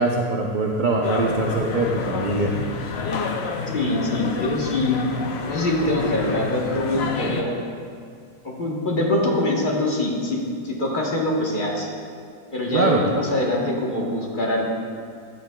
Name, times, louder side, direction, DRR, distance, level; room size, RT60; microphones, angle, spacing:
voice 1, 0.0-2.5 12.7-13.0, right 2 dB, 70° right, -2 dB, 0.4 m, -22 dB
sound 1, 1.0-7.4, left 4 dB, 60° left, 0.7 m, -28 dB
voice 2, 3.7-5.0 5.5-7.5 8.4-10.4 10.6-11.9 12.5-14.7, left 1 dB, 35° left, -2 dB, 1.2 m, -24 dB
13.0 x 8.5 x 2.3 m, 2.2 s
omnidirectional pair, 1.7 m